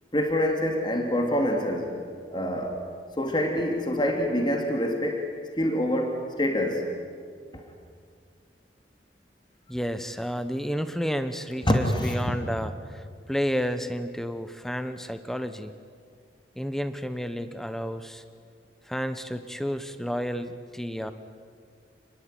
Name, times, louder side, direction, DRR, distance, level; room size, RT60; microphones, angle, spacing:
voice 1, 0.1-1.9 2.3-2.8 3.2-5.3 5.6-6.9 7.5-7.6 11.6-12.3, left 1 dB, 25° left, 2 dB, 2.9 m, -26 dB
voice 2, 9.7-15.8 16.6-18.2 18.9-21.1, equal, ahead, 10 dB, 1.2 m, -31 dB
29.0 x 20.5 x 9.1 m, 2.1 s
head